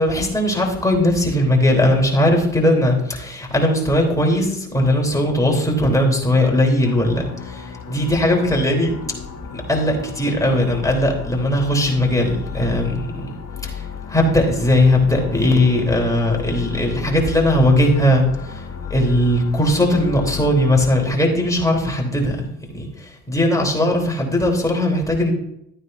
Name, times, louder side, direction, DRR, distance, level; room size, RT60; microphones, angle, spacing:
voice 1, 0.0-9.0 9.5-13.1 13.6-25.3, left 1 dB, 10° left, 0 dB, 3.5 m, -19 dB
sound 1, 6.8-20.9, left 7 dB, 40° left, 1.6 m, -34 dB
13.0 x 9.4 x 2.7 m, 0.80 s
supercardioid pair, 70°, 43 cm